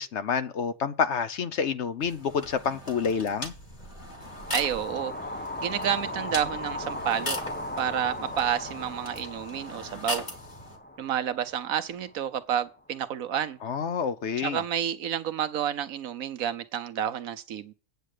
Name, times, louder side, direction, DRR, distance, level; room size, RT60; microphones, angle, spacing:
voice 1, 0.0-3.5 13.6-14.6, left 6 dB, 60° left, 0.9 m, -28 dB
sound 1, 2.0-10.8, left 1 dB, 30° left, 2.0 m, -39 dB
sound 2, 4.1-12.3, left 1 dB, 15° left, 0.3 m, -37 dB
voice 2, 4.5-5.1 5.6-7.4 7.8-10.2 11.0-13.6 14.4-17.7, right 9 dB, 80° right, 1.2 m, -30 dB
9.3 x 7.5 x 6.5 m
omnidirectional pair, 1.5 m